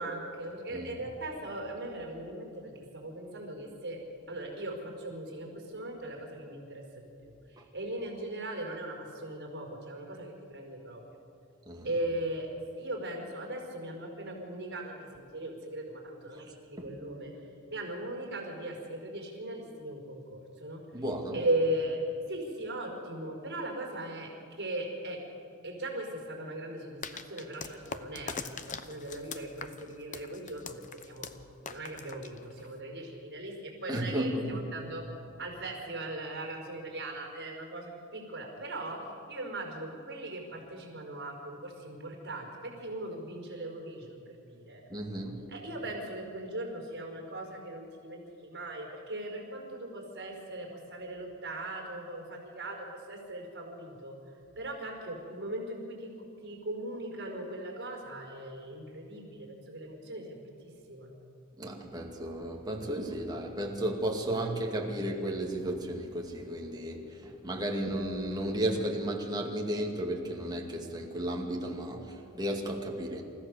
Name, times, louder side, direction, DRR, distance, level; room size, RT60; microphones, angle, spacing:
voice 1, 0.0-4.0 4.3-11.0 11.8-12.5 12.8-17.3 17.7-20.8 21.3-22.0 22.3-24.3 24.6-25.2 25.6-31.3 31.6-35.0 35.4-44.8 45.5-52.8 53.1-54.1 54.6-56.1 56.4-61.2, right 1 dB, 55° right, 1 dB, 4.9 m, -38 dB
voice 2, 20.9-21.4 33.9-34.7 44.9-45.4 61.6-73.2, right 1 dB, 20° right, 0 dB, 2.4 m, -34 dB
sound 1, 27.0-32.8, left 5 dB, 35° left, 0.9 m, -42 dB
28.5 x 15.0 x 6.8 m, 2.6 s
head